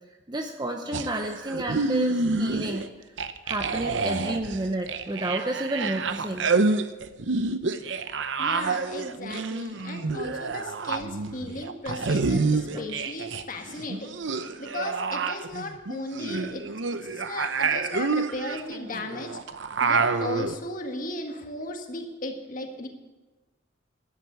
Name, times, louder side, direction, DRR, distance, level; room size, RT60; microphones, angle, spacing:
voice 1, 0.3-2.9 3.4-6.5 12.7-12.9, right 1 dB, 20° right, 4 dB, 0.7 m, -30 dB
sound 1, 0.9-2.9 3.2-13.4 13.7-20.6, right 4 dB, 70° right, 0.8 m, -28 dB
voice 2, 8.4-14.1 14.6-16.6 17.0-19.4 19.8-22.9, left 2 dB, 45° left, 4 dB, 1.7 m, -36 dB
12.5 x 9.6 x 8.1 m, 1.2 s
head